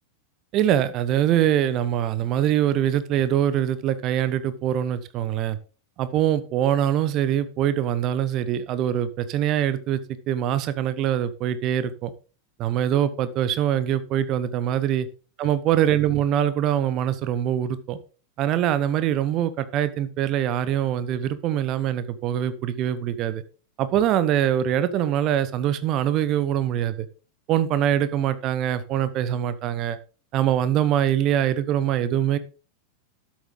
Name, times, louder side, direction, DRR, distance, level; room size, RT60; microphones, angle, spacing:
voice 1, 0.5-5.6 6.0-12.1 12.6-15.1 15.4-18.0 18.4-23.4 23.8-27.1 27.5-30.0 30.3-32.4, right 10 dB, 35° right, 14 dB, 1.0 m, -23 dB
12.0 x 7.4 x 3.8 m, 0.35 s
figure-of-eight pair, 90°, 0 cm